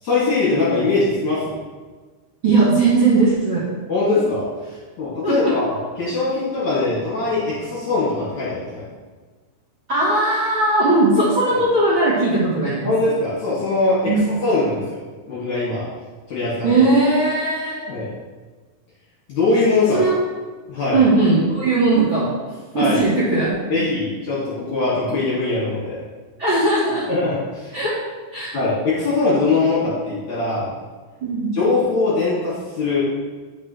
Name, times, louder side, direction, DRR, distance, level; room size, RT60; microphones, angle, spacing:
voice 1, 0.0-1.6 3.9-4.5 5.0-8.9 12.8-14.1 14.4-15.0 15.3-15.9 16.3-16.7 17.9-18.1 19.3-20.0 20.7-21.1 22.7-23.0 23.7-26.0 27.1-27.8 28.5-30.7 31.5-33.0, left 3 dB, 55° left, -9 dB, 3.2 m, -21 dB
voice 2, 2.4-3.6 5.2-5.5 9.9-12.9 14.1-14.2 16.6-17.8 19.9-20.1 20.9-22.3 22.7-23.5 26.4-27.0 27.7-27.9 28.3-28.5 31.2-31.5, right 2 dB, 40° right, -9 dB, 2.1 m, -18 dB
11.5 x 6.4 x 3.4 m, 1.4 s
omnidirectional pair, 4.6 m